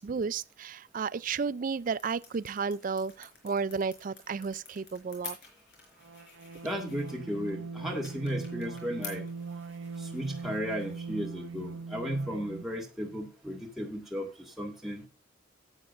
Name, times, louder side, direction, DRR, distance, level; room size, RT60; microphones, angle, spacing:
voice 1, 0.0-5.4, right 5 dB, 45° right, 0.4 m, -33 dB
sound 1, 1.3-12.7, left 6 dB, 60° left, 4.4 m, -51 dB
sound 2, 6.0-12.8, right 4 dB, 80° right, 0.6 m, -41 dB
voice 2, 6.6-9.2 10.0-14.3 14.6-15.0, equal, ahead, 1.7 m, -34 dB
12.5 x 9.0 x 2.5 m
head